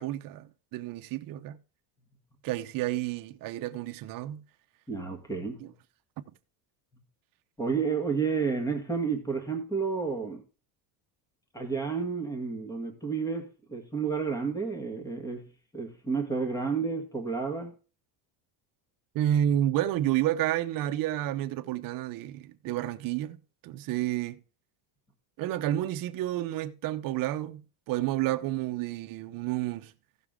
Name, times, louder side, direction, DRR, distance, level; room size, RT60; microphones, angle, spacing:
voice 1, 0.0-1.6 2.4-4.4 5.6-5.7 6.2-6.3 19.1-23.4 23.6-24.4 25.4-29.9, right 12 dB, 45° right, 0.8 m, -30 dB
voice 2, 4.9-5.7 7.6-10.4 11.5-17.7, right 5 dB, 5° left, 1.6 m, -31 dB
16.0 x 6.0 x 3.7 m
cardioid pair, 160°, 47 cm